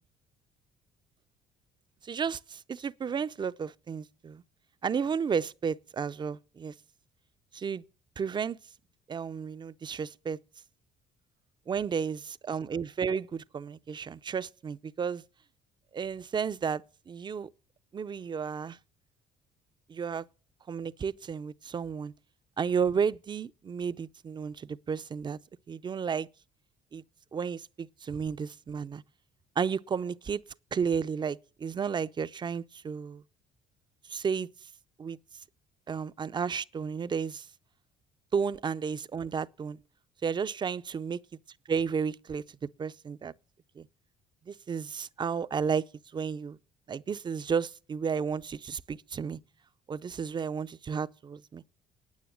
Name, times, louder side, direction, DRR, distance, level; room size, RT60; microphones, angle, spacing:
voice 1, 2.0-4.4 4.8-6.7 7.5-7.8 8.2-8.6 9.1-10.4 11.7-15.2 15.9-17.5 17.9-18.8 19.9-20.3 20.7-22.1 22.6-25.4 25.7-26.3 26.9-27.0 27.3-29.0 29.6-30.4 30.7-33.2 34.1-34.5 35.0-35.2 35.9-37.5 38.3-39.8 40.2-41.2 41.7-42.4 42.8-43.3 43.8-43.9 44.5-45.8 46.1-46.6 46.9-49.4 49.9-51.6, right 6 dB, 25° right, 0.5 m, -32 dB
9.4 x 9.3 x 7.2 m
cardioid pair, 110°, 17 cm